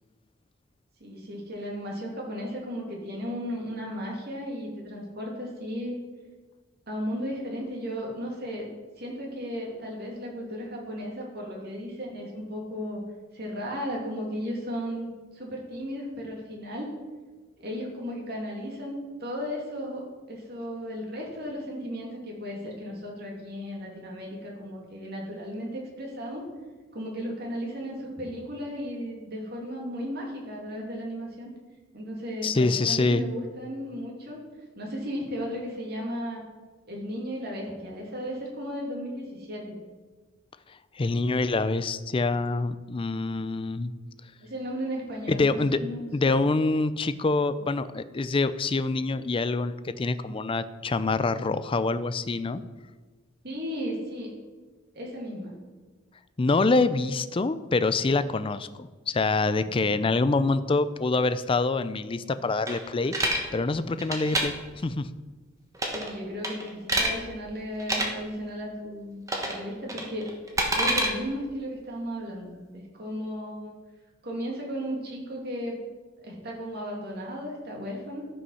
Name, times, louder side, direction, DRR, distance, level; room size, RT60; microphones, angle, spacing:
voice 1, 1.0-5.9 6.9-8.7 9.0-13.0 13.3-15.1 15.3-16.9 17.6-26.5 26.9-31.5 31.9-34.4 34.8-36.4 36.8-39.7 44.4-46.1 53.4-54.3 54.9-55.5 65.9-70.3 70.7-73.7 74.2-75.7 76.2-78.3, equal, 55° right, -2 dB, 2.7 m, -35 dB
voice 2, 32.4-33.2 41.0-43.9 45.3-45.8 46.1-52.6 56.4-63.1 63.5-64.5 64.8-65.1, left 3 dB, 25° left, 13 dB, 0.4 m, -25 dB
sound 1, 62.7-63.4 64.0-64.4 65.7-66.1 66.4-67.1 67.8-68.1 69.3-69.6 69.9-71.1, right 1 dB, 15° right, 1.2 m, -26 dB
13.0 x 5.5 x 5.6 m, 1.3 s
head